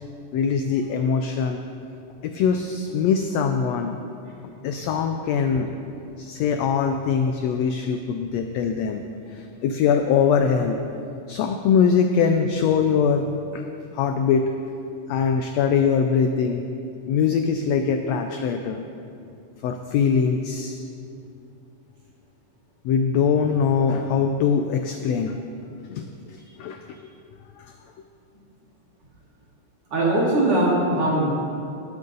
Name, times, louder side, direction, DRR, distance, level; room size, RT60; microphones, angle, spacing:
voice 1, 0.3-1.6 2.2-3.9 4.6-5.7 6.2-9.0 9.3-10.8 11.3-13.6 13.9-14.5 15.1-16.6 17.1-18.8 19.6-20.8 22.8-25.4 25.9-27.0 27.6-27.7, left 6 dB, 85° left, 5 dB, 1.5 m, -22 dB
voice 2, 29.9-31.2, right 1 dB, 45° right, -6 dB, 3.3 m, -20 dB
19.0 x 8.0 x 3.9 m, 2.6 s
omnidirectional pair, 3.6 m